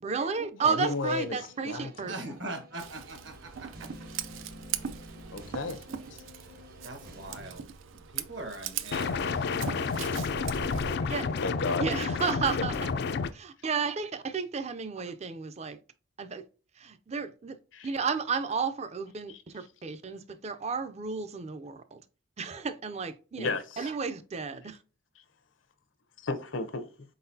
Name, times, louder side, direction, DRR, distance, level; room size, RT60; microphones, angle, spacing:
voice 1, 0.0-2.2 11.1-11.3 11.8-12.9 13.6-15.8 16.2-16.4 16.8-17.6 17.8-22.0 22.4-24.8, right 5 dB, 35° right, 0.5 m, -32 dB
voice 2, 0.7-1.4 1.6-2.1 5.3-5.8 6.1-6.2 9.8-10.1 11.4-11.8 12.6-12.7 17.7-17.9 23.4-23.9 26.2-26.9, left 3 dB, 80° left, 0.8 m, -33 dB
sound 1, 0.9-7.6, equal, 50° right, 0.9 m, -50 dB
voice 3, 2.1-3.9 6.8-9.3 10.1-10.6, right 2 dB, 65° right, 1.3 m, -42 dB
Scissors, 2.8-11.0, right 8 dB, 90° right, 0.5 m, -40 dB
sound 2, 8.9-13.3, left 5 dB, 55° left, 0.4 m, -30 dB
4.4 x 3.9 x 2.7 m
head